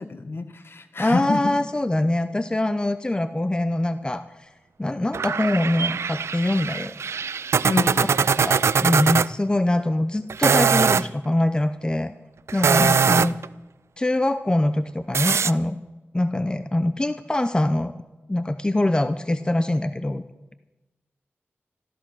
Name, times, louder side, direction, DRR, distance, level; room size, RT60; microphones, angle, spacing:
voice 1, 0.0-1.5 7.6-8.1 12.8-13.3, left 3 dB, 55° left, 9 dB, 1.5 m, -27 dB
voice 2, 1.0-4.5 4.8-6.9 8.4-12.1 12.5-13.4 14.0-15.8 16.1-17.9 18.3-20.2, left 1 dB, 20° left, 11 dB, 0.7 m, -23 dB
sound 1, 5.1-9.3 10.3-11.1 12.5-13.5 15.1-15.5, right 6 dB, 80° right, 0.4 m, -21 dB
14.0 x 13.5 x 6.3 m, 1.1 s
wide cardioid pair, 65°, 5 cm